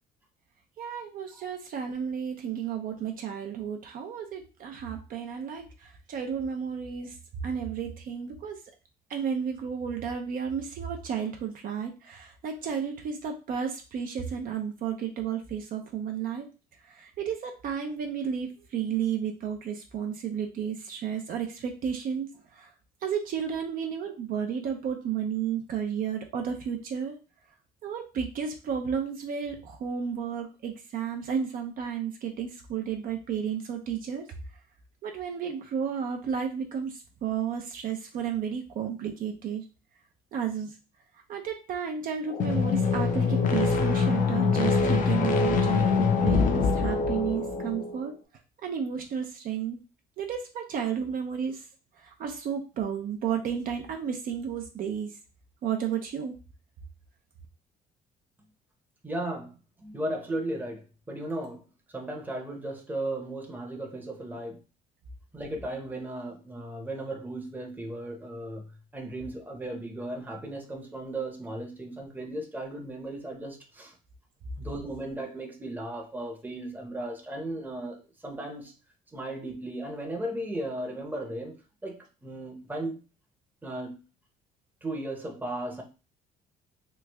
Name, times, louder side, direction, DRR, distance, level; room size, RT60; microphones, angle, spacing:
voice 1, 0.8-7.2 7.4-8.6 9.1-16.5 17.0-22.3 22.6-22.7 23.0-27.2 27.8-34.2 35.0-39.6 40.3-40.7 41.3-48.1 48.6-49.8 50.2-51.6 52.0-55.1 55.6-56.3, right 7 dB, 55° right, 0.6 m, -32 dB
sound 1, 42.3-47.9, left 5 dB, 50° left, 0.6 m, -24 dB
voice 2, 59.0-59.5 59.8-61.6 61.9-64.6 65.3-73.9 74.6-78.7 79.1-81.5 81.8-83.0 83.6-84.0 84.8-85.8, right 1 dB, 10° right, 0.8 m, -36 dB
3.1 x 2.3 x 3.4 m
cardioid pair, 110°, 17 cm